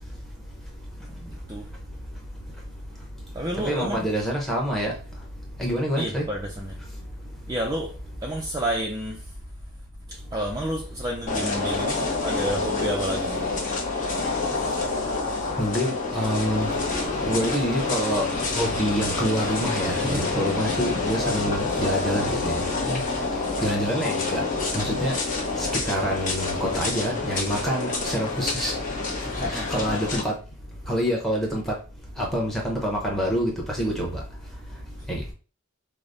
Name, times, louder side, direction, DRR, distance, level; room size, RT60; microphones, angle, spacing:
voice 1, 1.0-1.7 3.3-4.1 6.0-6.8 7.5-9.3 10.1-13.5 23.5-23.9 29.2-29.9, right 1 dB, 20° right, 0.3 m, -31 dB
voice 2, 3.6-4.9 5.6-6.3 15.6-16.7 17.2-18.3 18.5-23.0 23.6-24.4 24.7-25.1 25.6-28.7 29.5-30.3 30.9-31.7 32.2-34.2 35.1-35.3, equal, ahead, 0.8 m, -26 dB
sound 1, 11.3-30.2, left 3 dB, 40° left, 0.8 m, -27 dB
4.8 x 2.0 x 2.6 m
head